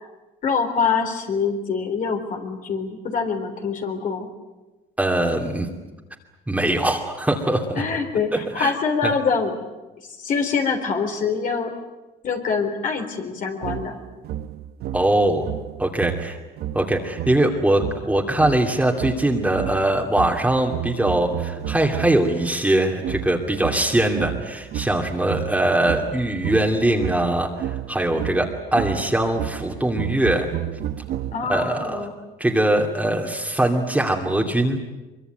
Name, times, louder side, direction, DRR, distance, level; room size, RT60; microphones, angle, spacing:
voice 1, 0.4-4.3 7.8-9.5 10.2-11.7 12.2-14.0 31.3-32.1, left 5 dB, 50° left, 3 dB, 3.7 m, -24 dB
voice 2, 5.0-5.7 6.5-7.8 8.3-8.7 9.0-9.1 14.9-15.4 15.8-16.4 16.7-30.5 31.5-32.1 32.4-34.8, right 1 dB, 10° right, 1 dB, 2.7 m, -22 dB
sound 1, 13.6-22.4 23.0-31.7, right 11 dB, 70° right, 0.9 m, -32 dB
23.5 x 23.0 x 9.2 m, 1.1 s
cardioid pair, 110°, 17 cm